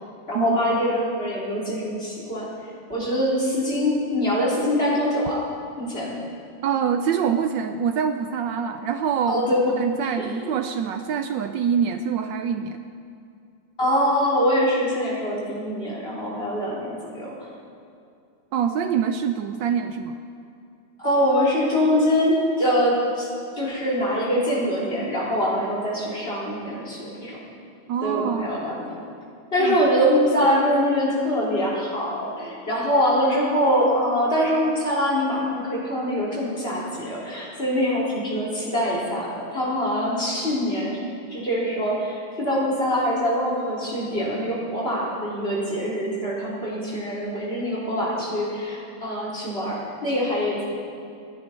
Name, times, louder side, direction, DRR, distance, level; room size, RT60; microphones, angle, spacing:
voice 1, 0.3-2.5 2.9-5.4 5.8-6.2 9.3-9.7 10.0-10.5 13.8-17.3 21.0-23.3 23.6-27.4 28.0-28.9 29.5-41.0 41.3-50.6, equal, 30° left, -6 dB, 4.0 m, -24 dB
voice 2, 6.6-9.4 9.8-12.9 18.5-20.2 27.9-28.7 29.6-29.8, right 7 dB, 75° right, 8 dB, 1.2 m, -25 dB
27.5 x 10.0 x 4.4 m, 2.5 s
omnidirectional pair, 2.2 m